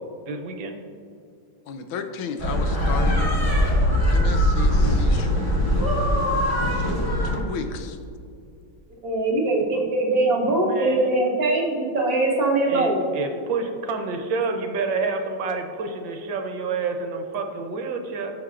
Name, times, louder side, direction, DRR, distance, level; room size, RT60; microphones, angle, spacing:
voice 1, 0.3-0.8 10.2-11.1 12.7-18.3, right 4 dB, 75° right, 5 dB, 1.5 m, -29 dB
voice 2, 1.7-5.6 6.6-8.0, left 6 dB, 90° left, 7 dB, 1.5 m, -34 dB
sound 1, 2.4-7.4, equal, 20° left, 1.7 m, -21 dB
voice 3, 9.0-13.0, right 2 dB, 50° right, -1 dB, 1.8 m, -22 dB
14.5 x 6.2 x 2.5 m, 2.5 s
omnidirectional pair, 2.1 m